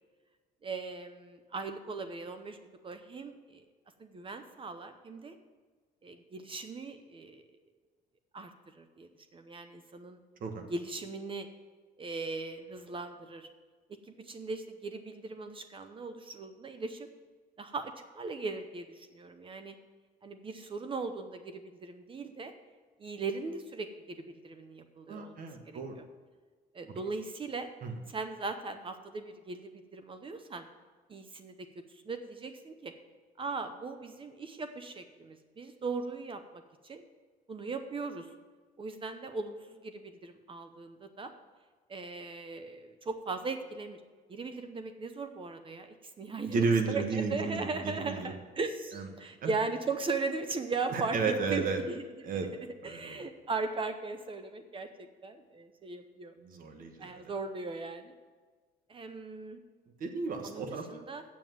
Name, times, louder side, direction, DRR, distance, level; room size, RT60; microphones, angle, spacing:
voice 1, 0.6-3.6 4.0-5.4 6.0-7.4 8.3-10.2 10.7-11.5 12.0-13.5 13.9-17.1 17.6-19.7 20.2-22.5 23.0-25.4 25.7-26.0 26.7-27.7 28.1-30.7 31.1-31.7 32.0-32.9 33.4-37.1 37.5-38.3 38.8-41.3 41.9-44.0 44.3-52.0 52.8-56.3 57.0-58.2 58.9-59.6 60.4-61.2, right 4 dB, 30° right, 8 dB, 0.7 m, -38 dB
voice 2, 25.1-26.0 27.8-28.0 46.5-48.3 48.9-49.6 50.9-51.8 52.2-52.5 52.8-53.2 56.4-57.3 60.0-60.9, right 4 dB, 55° right, 5 dB, 1.4 m, -33 dB
7.4 x 7.4 x 7.7 m, 1.4 s
cardioid pair, 110°, 17 cm